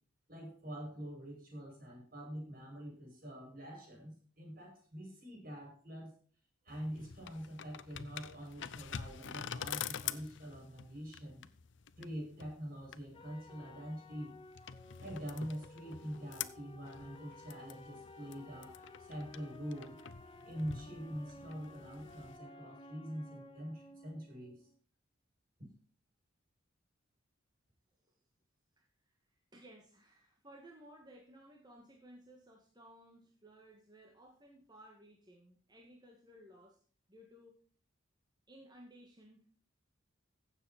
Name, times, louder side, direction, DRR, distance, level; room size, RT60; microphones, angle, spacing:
voice 1, 0.3-6.1 6.7-11.5 12.0-14.4 15.0-20.0 20.5-24.7, equal, 45° right, -1 dB, 7.0 m, -45 dB
sound 1, 6.7-22.4, left 8 dB, 60° left, 0.6 m, -47 dB
sound 2, 13.1-24.8, left 2 dB, 25° left, 0.9 m, -55 dB
voice 2, 28.8-29.2 29.5-36.8 37.1-37.6 38.5-39.4, right 1 dB, 20° right, 0 dB, 1.7 m, -58 dB
15.0 x 7.6 x 4.2 m, 0.43 s
head